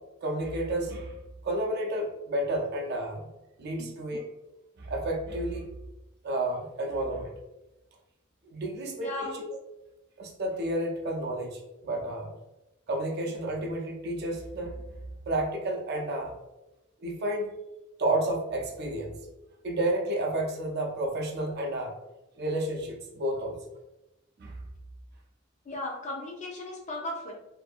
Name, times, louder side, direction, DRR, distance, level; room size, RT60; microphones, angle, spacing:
voice 1, 0.2-1.2 1.4-3.3 3.6-4.3 4.8-5.7 6.2-7.3 8.4-9.6 10.2-12.3 12.9-14.8 15.3-16.4 17.0-17.5 18.0-19.2 19.6-21.9 22.4-23.6 24.4-24.6, right 1 dB, 50° right, 1 dB, 0.5 m, -31 dB
voice 2, 8.8-9.3 25.7-27.3, left 2 dB, 35° left, 0 dB, 0.5 m, -36 dB
2.5 x 2.5 x 2.4 m, 0.95 s
head